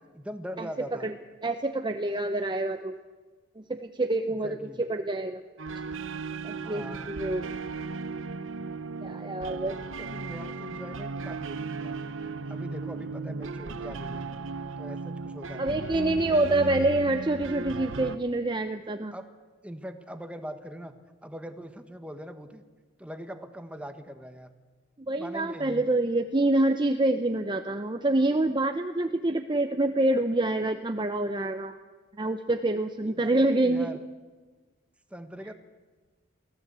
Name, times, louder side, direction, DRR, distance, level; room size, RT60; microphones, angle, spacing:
voice 1, 0.1-1.1 4.2-4.8 6.5-7.1 9.9-11.9 12.5-14.3 14.8-15.9 16.5-17.1 19.1-19.2 19.6-20.9 21.2-22.6 23.0-24.5 25.1-25.8 32.5-32.6 33.0-34.0 35.1-35.5, equal, 5° right, 7 dB, 1.4 m, -41 dB
voice 2, 1.4-2.9 3.6-5.4 6.4-6.8 7.1-7.4 9.0-9.8 15.6-19.1 25.1-31.8 32.2-33.9, right 2 dB, 25° right, 7 dB, 0.7 m, -26 dB
sound 1, 5.6-18.2, right 4 dB, 70° right, 0.9 m, -36 dB
24.0 x 16.5 x 8.2 m, 1.4 s
head